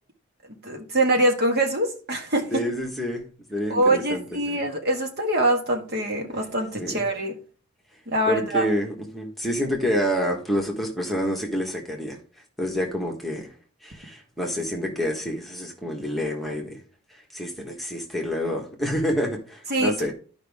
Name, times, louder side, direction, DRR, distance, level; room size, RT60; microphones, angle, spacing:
voice 1, 0.5-2.6 3.7-7.4 8.1-8.6 19.7-20.1, right 1 dB, 45° right, 1.7 m, -24 dB
voice 2, 2.5-4.6 6.8-7.1 8.3-12.2 12.6-13.5 13.8-16.8 17.3-20.1, equal, ahead, 1.5 m, -28 dB
12.0 x 5.3 x 3.6 m
head